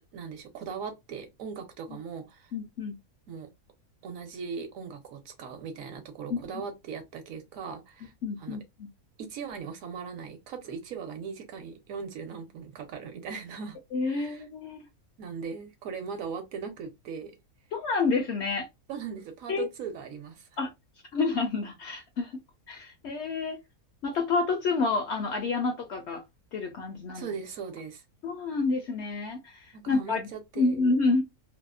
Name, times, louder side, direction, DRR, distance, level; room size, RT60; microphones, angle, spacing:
voice 1, 0.1-2.5 3.3-3.5 4.0-8.1 8.4-8.6 9.2-13.8 14.1-14.4 15.2-17.3 18.9-20.5 27.1-28.0 29.7-30.8, right 6 dB, 70° right, 1.1 m, -39 dB
voice 2, 2.5-3.0 6.3-6.4 8.2-8.9 13.9-14.9 17.7-18.7 19.5-19.6 20.6-20.7 21.1-22.3 22.7-23.6 24.0-26.2 26.5-27.3 28.2-30.3 30.6-31.2, left 3 dB, 65° left, 0.7 m, -28 dB
2.7 x 2.0 x 2.3 m
omnidirectional pair, 1.5 m